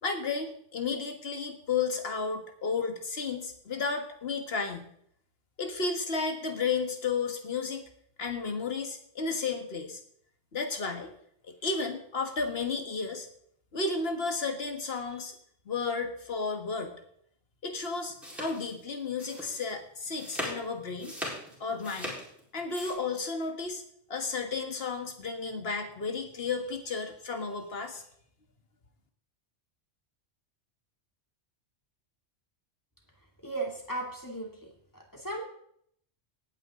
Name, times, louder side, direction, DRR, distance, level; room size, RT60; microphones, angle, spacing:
voice 1, 0.0-4.9 5.6-7.9 8.2-10.0 10.5-11.1 11.6-13.3 13.7-15.4 15.7-16.9 17.6-21.1 21.6-22.1 22.5-23.8 24.1-28.0, left 4 dB, 60° left, 5 dB, 1.8 m, -33 dB
sound 1, 17.7-22.9, equal, ahead, 4.2 m, -40 dB
voice 2, 33.4-34.5 34.9-35.4, right 2 dB, 15° left, 0 dB, 2.6 m, -35 dB
18.5 x 9.1 x 3.8 m, 0.67 s
omnidirectional pair, 1.2 m